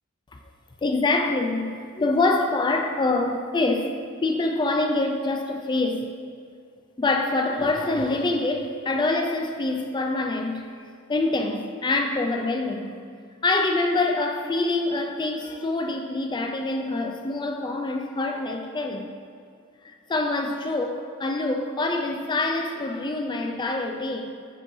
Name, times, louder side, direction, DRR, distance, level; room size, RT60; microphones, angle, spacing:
voice 1, 0.8-3.9 4.2-6.1 7.0-10.7 11.1-13.0 13.4-19.1 19.8-24.3, left 2 dB, 20° left, 4 dB, 0.4 m, -25 dB
9.8 x 4.5 x 2.7 m, 2.2 s
head